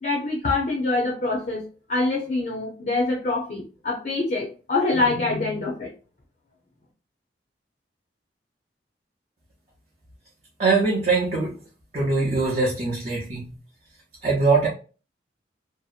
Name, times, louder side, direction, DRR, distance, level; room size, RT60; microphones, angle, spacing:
voice 1, 0.0-1.6 1.9-5.9, left 3 dB, 45° left, -1 dB, 0.5 m, -25 dB
voice 2, 10.6-11.6 11.9-13.5 14.2-14.7, right 3 dB, 35° right, -5 dB, 0.6 m, -22 dB
2.7 x 2.0 x 2.4 m, 0.36 s
head